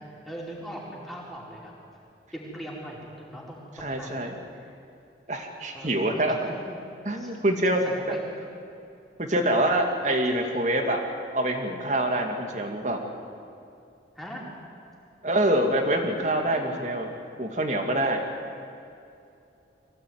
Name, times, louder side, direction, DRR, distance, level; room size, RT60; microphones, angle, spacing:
voice 1, 0.2-1.7 2.3-4.3 4.5-4.7 5.7-6.8 7.2-7.3 7.8-8.2 14.1-14.4 16.4-16.8, equal, ahead, -4 dB, 4.5 m, -40 dB
voice 2, 3.8-4.3 5.3-6.4 7.0-7.8 8.1-8.2 9.3-11.0 11.3-13.0 15.2-17.1 17.4-18.2, right 1 dB, 40° right, 3 dB, 2.3 m, -25 dB
23.5 x 16.5 x 9.5 m, 2.6 s
head